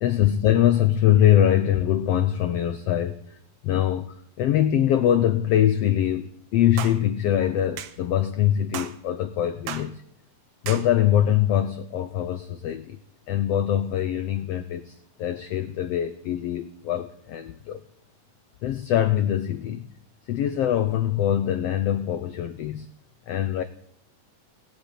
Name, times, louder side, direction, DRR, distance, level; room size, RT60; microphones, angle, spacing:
voice 1, 0.0-3.4 3.6-10.0 10.6-13.0 13.3-17.8 18.6-19.9 20.3-22.9 23.3-23.6, left 11 dB, 90° left, 1.4 m, -23 dB
sound 1, 6.8-7.0 7.8-8.0 8.7-9.0 9.7-9.9 10.7-10.9, right 10 dB, 85° right, 2.6 m, -34 dB
17.5 x 8.4 x 9.0 m
omnidirectional pair, 3.7 m